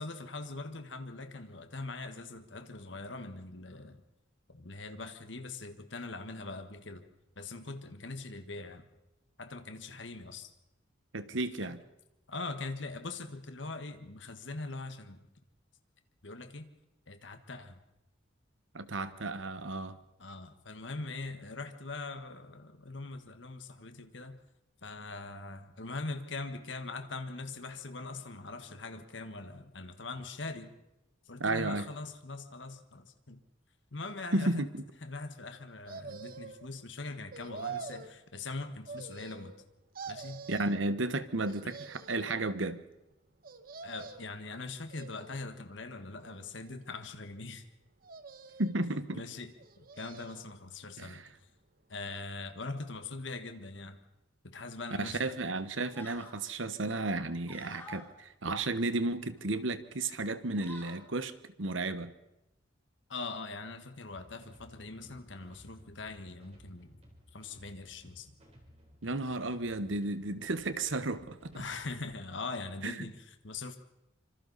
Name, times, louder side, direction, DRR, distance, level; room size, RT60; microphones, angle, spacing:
voice 1, 0.0-4.0 4.5-7.0 7.4-8.8 9.4-10.5 11.6-11.7 12.3-15.2 16.2-16.7 17.1-17.8 20.2-24.4 24.8-30.7 31.3-33.4 33.9-34.5 35.0-39.5 40.1-40.5 43.8-47.6 49.1-51.2 51.9-54.0 54.4-55.4 63.1-67.0 67.3-68.3 71.5-73.8, left 3 dB, 65° left, 8 dB, 1.5 m, -42 dB
voice 2, 11.1-11.8 18.7-20.0 31.4-31.9 34.3-34.8 40.5-42.8 48.6-49.2 51.0-51.3 55.0-62.1 69.0-71.6 72.8-73.0, right 2 dB, 80° right, 12 dB, 1.2 m, -33 dB
sound 1, 35.9-36.7 37.3-38.1 38.9-39.6 39.9-40.8 41.4-42.3 43.4-44.4 44.9-45.6 46.2-47.0 48.0-48.8 49.6-50.5 50.9-51.0, right 5 dB, 50° right, 1.1 m, -45 dB
sound 2, 55.1-55.2 55.6-56.4 56.8-58.1 58.6-59.5 59.9-60.1 60.4-61.0, left 2 dB, 10° left, 3.7 m, -51 dB
sound 3, 64.1-72.2, equal, 35° right, 4.0 m, -58 dB
25.5 x 25.5 x 4.1 m, 0.92 s
head